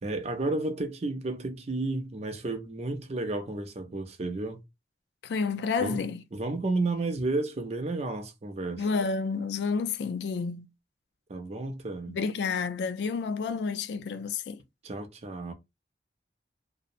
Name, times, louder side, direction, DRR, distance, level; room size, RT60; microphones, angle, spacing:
voice 1, 0.0-4.6 5.8-6.0 6.3-8.8 11.3-12.2 14.8-15.5, right 2 dB, 35° right, 0.4 m, -32 dB
voice 2, 5.2-6.2 8.8-10.7 12.1-14.6, left 5 dB, 75° left, 0.3 m, -30 dB
2.7 x 2.0 x 2.4 m
head